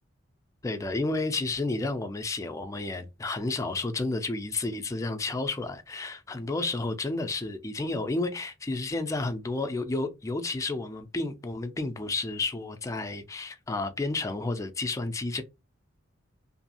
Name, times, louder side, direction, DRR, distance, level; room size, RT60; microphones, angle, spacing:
voice 1, 0.6-15.4, left 2 dB, 15° left, 0.4 m, -31 dB
2.6 x 2.4 x 2.8 m
head